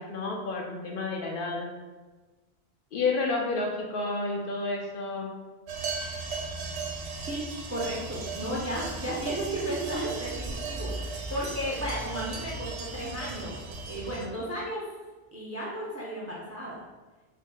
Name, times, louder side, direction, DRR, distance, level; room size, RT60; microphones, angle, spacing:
voice 1, 0.0-1.7 2.9-5.3, left 3 dB, 60° left, 0 dB, 0.7 m, -30 dB
sound 1, 5.7-14.3, right 3 dB, 85° right, 0.8 m, -36 dB
voice 2, 7.7-14.8 15.3-16.8, equal, 20° right, -5 dB, 0.4 m, -34 dB
3.7 x 2.0 x 3.6 m, 1.2 s
omnidirectional pair, 1.1 m